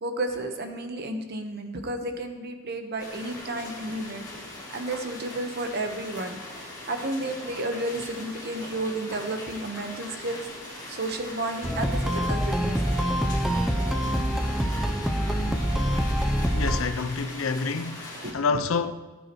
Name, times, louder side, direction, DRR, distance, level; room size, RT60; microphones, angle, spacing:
voice 1, 0.0-10.5 10.9-12.8 13.5-13.6 14.1-14.2 16.1-16.3 18.2-18.4, right 2 dB, 50° right, 1.1 m, -32 dB
sound 1, 3.0-18.3, left 1 dB, 20° left, 2.4 m, -40 dB
sound 2, 11.6-16.8, equal, ahead, 0.6 m, -25 dB
voice 2, 16.5-18.9, left 4 dB, 75° left, 0.6 m, -28 dB
19.0 x 9.2 x 3.1 m
head